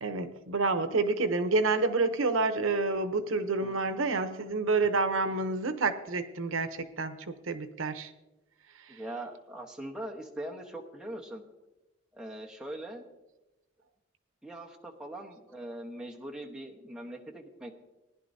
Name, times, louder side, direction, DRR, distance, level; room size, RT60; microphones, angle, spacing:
voice 1, 0.0-6.7 7.0-8.1, right 3 dB, 85° right, 10 dB, 0.8 m, -28 dB
voice 2, 8.9-11.4 12.1-13.1 14.4-17.7, right 1 dB, 5° right, -1 dB, 1.1 m, -41 dB
19.5 x 11.0 x 2.7 m, 1.0 s
head